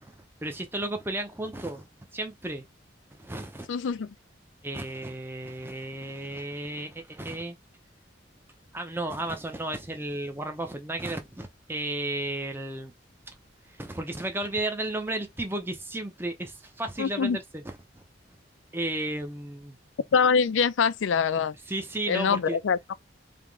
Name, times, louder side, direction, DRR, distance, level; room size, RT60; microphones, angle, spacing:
voice 1, 0.0-2.6 3.2-3.7 4.6-7.6 8.7-12.9 13.7-18.0 18.7-19.8 21.7-22.6, right 1 dB, 10° right, 0.7 m, -33 dB
voice 2, 3.7-4.1 17.0-17.4 20.1-21.5 22.1-22.8, left 6 dB, 90° left, 0.4 m, -24 dB
3.6 x 2.9 x 3.5 m
head